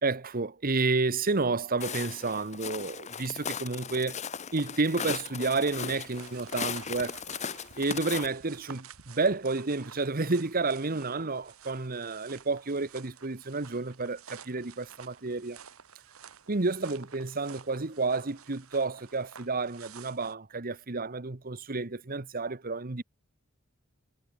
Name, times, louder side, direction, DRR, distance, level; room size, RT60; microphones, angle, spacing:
voice 1, 0.0-4.2 4.5-7.2 7.8-15.6 16.5-23.0, right 3 dB, 45° right, 1.2 m, -30 dB
Walk footsteps, 1.8-8.3, left 7 dB, 35° left, 0.9 m, -37 dB
sound 1, 5.9-20.3, right 7 dB, 80° right, 1.6 m, -51 dB
head